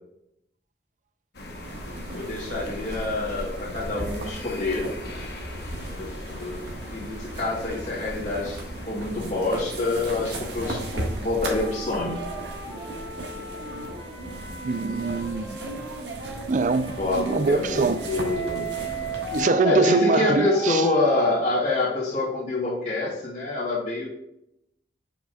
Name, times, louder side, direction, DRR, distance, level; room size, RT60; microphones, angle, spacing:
sound 1, 1.3-14.8, left 1 dB, 65° left, 0.9 m, -42 dB
sound 2, 1.6-19.4, right 1 dB, 75° right, 1.5 m, -36 dB
voice 1, 2.1-4.9 6.0-6.6 6.9-8.6 8.9-12.2 17.0-18.7 19.3-19.4 19.6-24.1, left 2 dB, 40° left, 2.2 m, -26 dB
sound 3, 11.4-16.0 16.6-21.4, equal, 20° left, 2.0 m, -35 dB
voice 2, 14.6-15.6 16.5-18.1 19.3-20.9, right 4 dB, 45° right, 0.3 m, -23 dB
7.4 x 6.0 x 2.3 m
head